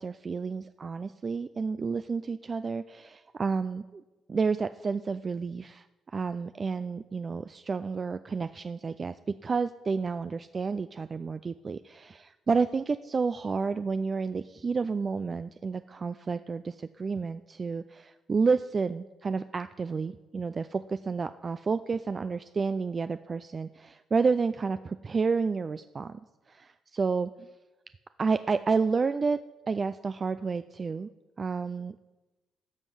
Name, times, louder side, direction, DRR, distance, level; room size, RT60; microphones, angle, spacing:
voice 1, 0.0-4.0 4.3-5.9 6.1-9.1 9.4-26.2 26.5-27.5 28.2-29.4 29.7-31.1 31.4-32.0, right 4 dB, 35° right, 12 dB, 0.3 m, -30 dB
15.5 x 5.4 x 6.2 m, 1.1 s
cardioid pair, 90°, 0 cm